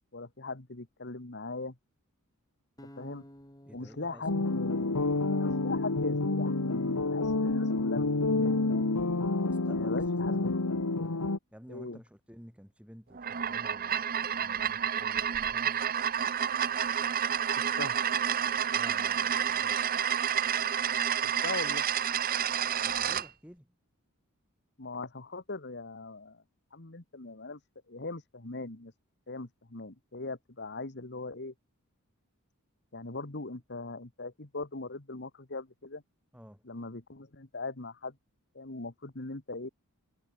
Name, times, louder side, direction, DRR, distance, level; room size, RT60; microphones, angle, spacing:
voice 1, 0.1-1.8 3.0-3.3 3.7-8.9 9.7-10.6 10.9-11.2 11.7-12.0 17.8-18.0 21.2-21.8 24.8-26.4 26.7-27.6 27.9-28.9 29.3-31.5 32.9-36.0 36.6-38.2 38.5-39.7, left 3 dB, 50° left, 1.7 m, -40 dB
sound 1, 2.8-5.9, equal, 15° left, 6.5 m, -55 dB
voice 2, 3.7-4.2 9.6-9.9 10.3-10.6 11.5-15.8 18.7-20.0 22.8-23.7 36.3-36.6, equal, 5° right, 5.4 m, -52 dB
sound 2, 4.3-11.4, left 2 dB, 90° left, 1.4 m, -29 dB
sound 3, 13.1-23.3, right 8 dB, 40° right, 0.8 m, -29 dB
head